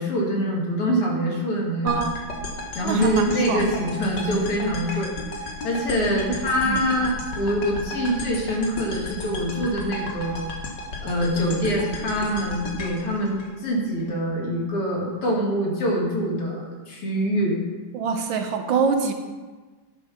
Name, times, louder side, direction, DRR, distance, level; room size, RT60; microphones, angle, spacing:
voice 1, 0.0-1.9 2.7-5.1 5.6-10.5 11.0-17.6, equal, 85° left, -2 dB, 2.9 m, -24 dB
voice 2, 1.8-2.2 2.8-3.7 6.1-6.2 6.6-6.8 17.9-19.1, right 5 dB, 70° right, 5 dB, 1.3 m, -25 dB
sound 1, 1.9-14.0, left 2 dB, 55° left, 1.8 m, -34 dB
11.0 x 5.0 x 5.8 m, 1.3 s
omnidirectional pair, 2.4 m